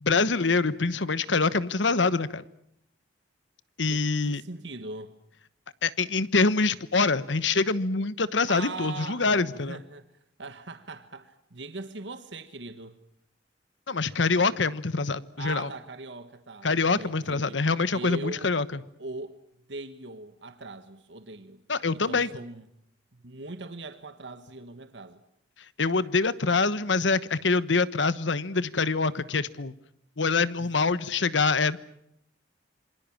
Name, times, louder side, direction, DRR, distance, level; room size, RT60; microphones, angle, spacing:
voice 1, 0.0-2.4 3.8-4.4 5.8-9.8 13.9-15.7 16.6-18.8 21.7-22.3 25.8-29.7 30.2-31.8, left 4 dB, 75° left, 16 dB, 1.1 m, -25 dB
voice 2, 3.9-5.1 8.5-10.1 10.4-13.0 15.4-18.5 19.0-19.4 19.7-21.6 21.9-22.7 23.2-25.2 30.6-30.7, right 3 dB, 70° right, 9 dB, 1.5 m, -40 dB
27.5 x 25.0 x 7.3 m, 0.77 s
head